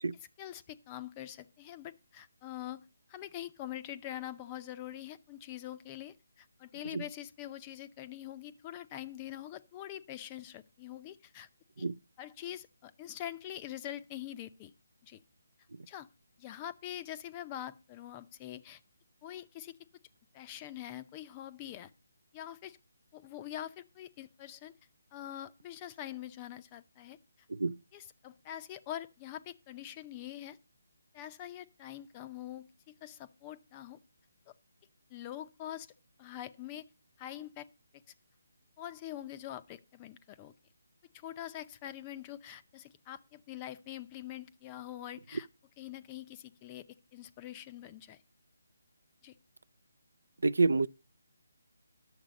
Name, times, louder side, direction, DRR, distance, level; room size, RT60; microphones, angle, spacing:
voice 1, 0.2-11.5 11.8-11.9 12.2-14.7 15.0-15.2 15.9-16.1 16.4-18.8 19.2-19.7 20.3-21.9 22.3-22.8 23.1-24.7 25.1-27.2 27.9-30.6 31.1-34.0 34.5-34.6 35.1-35.9 36.2-36.9 37.2-37.7 38.8-40.5 41.1-45.5 45.8-46.8 47.1-48.2 49.2-49.4, left 12 dB, 20° left, 0.5 m, -44 dB
voice 2, 50.4-50.9, right 3 dB, 80° right, 0.4 m, -27 dB
10.5 x 7.3 x 5.1 m
hypercardioid pair, 165°, 0 cm